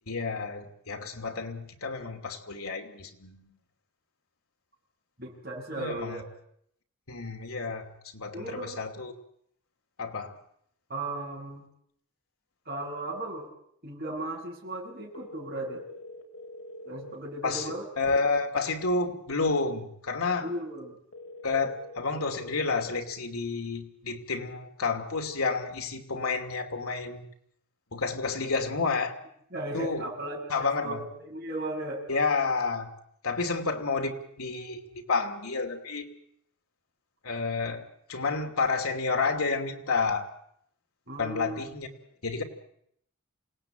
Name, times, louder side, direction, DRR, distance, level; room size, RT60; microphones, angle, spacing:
voice 1, 0.1-3.5 5.8-6.2 7.1-9.1 10.0-10.3 17.4-20.5 21.4-27.2 27.9-29.1 29.7-30.1 30.5-31.0 32.1-32.9 33.2-36.1 37.2-37.8 38.1-40.3 41.2-41.9 42.2-42.4, left 4 dB, 90° left, 3 dB, 2.7 m, -30 dB
voice 2, 5.2-6.2 8.3-8.8 10.9-11.6 12.7-13.5 13.8-15.8 16.8-17.8 20.4-21.0 29.5-32.0 41.1-41.6, right 2 dB, 45° right, -1 dB, 7.8 m, -36 dB
sound 1, 15.1-17.1 21.1-23.1, left 2 dB, 65° left, 5.5 m, -44 dB
27.5 x 17.5 x 9.0 m, 0.71 s
head